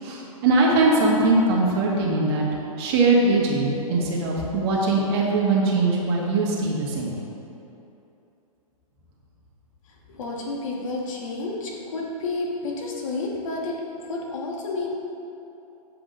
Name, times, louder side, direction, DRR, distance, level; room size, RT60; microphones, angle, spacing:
voice 1, 0.0-2.4 2.8-7.1, right 2 dB, 45° right, -3 dB, 1.5 m, -21 dB
voice 2, 10.1-13.8 14.1-15.0, left 3 dB, 60° left, -2 dB, 1.5 m, -30 dB
8.5 x 7.6 x 2.6 m, 2.9 s
hypercardioid pair, 140°, 19 cm